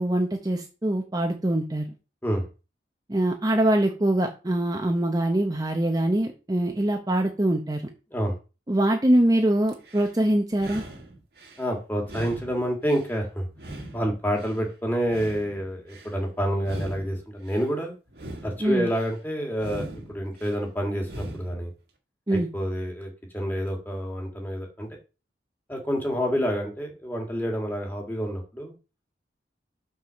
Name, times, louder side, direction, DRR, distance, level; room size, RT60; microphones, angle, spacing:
voice 1, 0.0-1.8 3.1-7.9 8.7-10.8 18.6-18.9 22.3-22.5, right 1 dB, 20° right, 3 dB, 0.8 m, -23 dB
sound 1, 9.7-10.2 10.5-11.6 12.0-13.2 13.5-14.6 15.0-16.1 16.6-17.7 18.1-19.1 19.6-20.6 21.0-21.6, right 1 dB, 60° right, 1.9 m, -41 dB
voice 2, 11.6-13.5 13.9-17.9 18.4-21.7 22.3-24.9 25.7-28.7, equal, 10° left, 1 dB, 2.0 m, -28 dB
5.8 x 4.8 x 6.3 m, 0.32 s
head